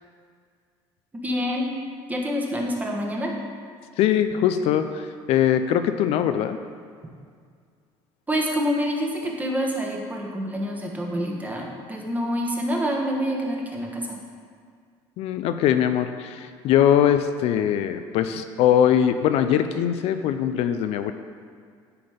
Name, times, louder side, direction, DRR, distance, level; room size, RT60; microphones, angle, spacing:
voice 1, 1.2-1.7 2.1-3.3 8.3-14.2, equal, 15° right, 0 dB, 1.3 m, -27 dB
voice 2, 4.0-6.6 15.2-21.1, left 10 dB, 65° left, 9 dB, 0.4 m, -21 dB
9.8 x 4.2 x 5.1 m, 2.1 s
cardioid pair, 115°, 11 cm